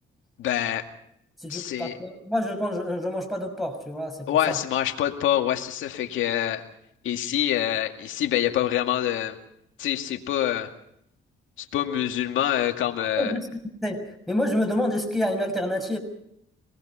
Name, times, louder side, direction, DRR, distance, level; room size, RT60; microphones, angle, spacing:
voice 1, 0.4-0.9 1.5-2.0 4.3-6.6 7.0-9.4 9.8-10.7 11.6-13.3, left 11 dB, 80° left, 4 dB, 2.2 m, -26 dB
voice 2, 1.4-4.6 13.2-13.5 13.8-16.0, left 1 dB, ahead, 5 dB, 6.2 m, -28 dB
25.5 x 19.5 x 5.7 m, 0.74 s
cardioid pair, 90°, 20 cm